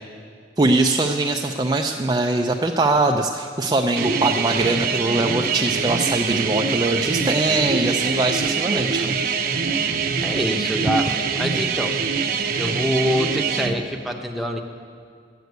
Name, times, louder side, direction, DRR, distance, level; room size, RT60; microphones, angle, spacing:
voice 1, 0.6-9.1, right 2 dB, 20° right, 2 dB, 0.4 m, -22 dB
sound 1, 4.0-13.7, right 5 dB, 50° right, 0.7 m, -24 dB
voice 2, 8.7-9.1 10.2-11.1 11.3-12.0 12.6-14.6, equal, ahead, 0 dB, 0.9 m, -25 dB
11.5 x 8.1 x 9.3 m, 2.2 s
head